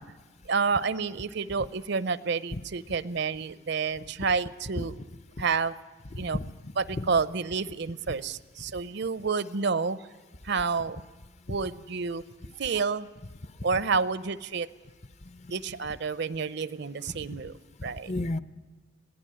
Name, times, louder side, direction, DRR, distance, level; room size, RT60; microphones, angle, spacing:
voice 1, 0.5-4.9 5.4-5.7 6.2-6.4 6.8-10.0 10.4-11.0 11.5-12.2 12.6-13.1 13.6-14.7 15.5-17.5 17.8-18.1, right 5 dB, 55° right, 17 dB, 0.6 m, -29 dB
voice 2, 6.1-7.1 8.1-8.2 11.5-11.6 15.4-15.5 17.1-17.2 18.1-18.4, left 1 dB, 35° left, 14 dB, 0.6 m, -34 dB
20.5 x 16.5 x 9.8 m, 1.3 s
head